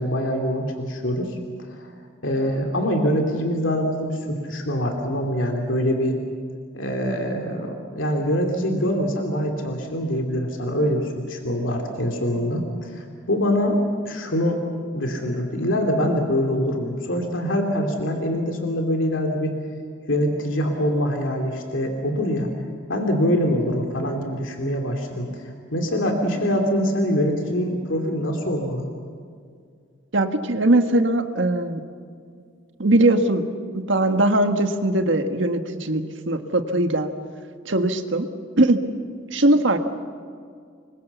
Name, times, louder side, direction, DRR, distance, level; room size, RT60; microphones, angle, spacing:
voice 1, 0.0-1.4 1.7-1.9 2.2-6.2 6.7-13.8 14.0-14.6 14.9-19.6 20.1-22.5 22.9-28.9, equal, 80° left, 2 dB, 2.8 m, -24 dB
voice 2, 30.1-31.8 32.8-33.4 33.7-37.1 37.6-38.3 38.6-38.8 39.3-39.8, right 1 dB, 70° right, 7 dB, 1.6 m, -20 dB
26.0 x 23.0 x 7.1 m, 2.2 s
head